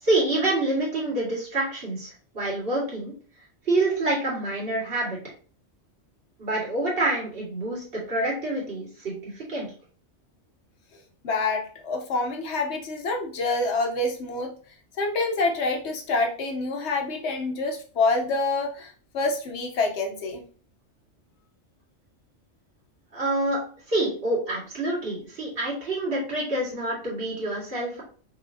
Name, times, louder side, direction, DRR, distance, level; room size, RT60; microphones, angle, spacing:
voice 1, 0.0-3.1 3.7-5.2 6.4-9.7 23.1-28.0, right 2 dB, 50° right, -5 dB, 2.1 m, -27 dB
voice 2, 11.2-14.5 15.0-20.4, left 3 dB, 65° left, 3 dB, 1.2 m, -27 dB
5.6 x 3.3 x 2.7 m, 0.42 s
omnidirectional pair, 1.2 m